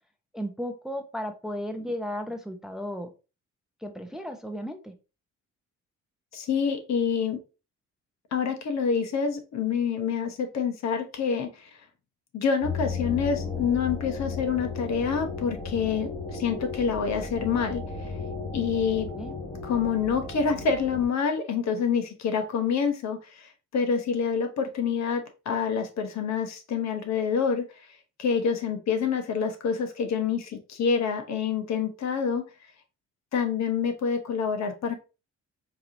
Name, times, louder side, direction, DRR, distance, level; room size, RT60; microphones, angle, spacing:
voice 1, 0.3-3.1 3.8-4.9 19.1-19.3, equal, ahead, 6 dB, 0.7 m, -34 dB
voice 2, 6.3-7.4 8.3-11.7 12.3-17.8 18.5-19.1 19.6-27.6 28.2-32.4 33.3-34.9, left 6 dB, 60° left, 6 dB, 1.0 m, -27 dB
sound 1, 12.6-21.1, left 4 dB, 30° left, 1.5 m, -35 dB
4.6 x 2.8 x 2.6 m, 0.30 s
cardioid pair, 90°, 30 cm